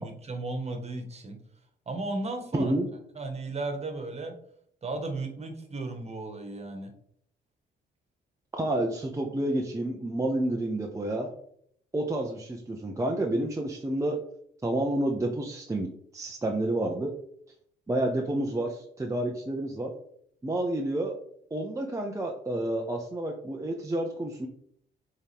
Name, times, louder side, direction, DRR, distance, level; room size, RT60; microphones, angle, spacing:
voice 1, 0.0-1.4 1.9-2.7 3.1-4.3 4.8-6.9, right 2 dB, 35° right, 4 dB, 1.5 m, -35 dB
voice 2, 2.5-2.9 8.5-11.3 11.9-14.2 14.6-17.1 17.9-19.9 20.4-21.1 21.5-24.5, right 1 dB, 15° right, 0 dB, 0.8 m, -29 dB
7.1 x 3.7 x 3.6 m, 0.68 s
cardioid pair, 90°, 20 cm